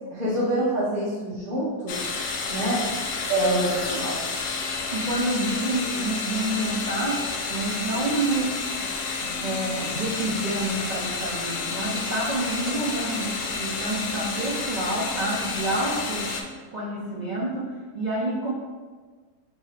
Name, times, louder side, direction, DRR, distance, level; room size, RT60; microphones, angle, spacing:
voice 1, 0.1-2.1 2.5-2.8 3.3-4.2, right 1 dB, 40° right, -9 dB, 0.9 m, -26 dB
sound 1, 1.9-16.4, left 4 dB, 70° left, 0.7 m, -30 dB
voice 2, 4.9-8.9 9.2-16.4 16.7-18.5, right 1 dB, 85° right, -6 dB, 0.4 m, -28 dB
3.9 x 2.8 x 4.8 m, 1.4 s
omnidirectional pair, 1.8 m